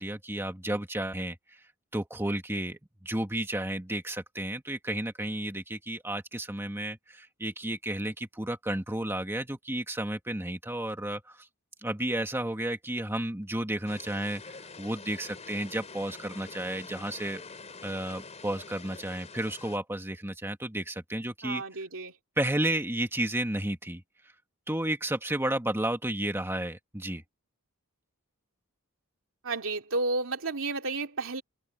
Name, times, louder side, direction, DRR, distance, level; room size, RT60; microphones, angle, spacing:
voice 1, 0.0-1.6 1.9-11.5 11.8-17.4 17.8-21.6 22.4-24.0 24.7-27.2, right 1 dB, 10° right, 1.7 m, -32 dB
sound 1, 13.9-19.8, left 4 dB, 30° left, 3.9 m, -46 dB
voice 2, 21.4-22.1 29.4-31.4, right 3 dB, 65° right, 3.2 m, -32 dB
head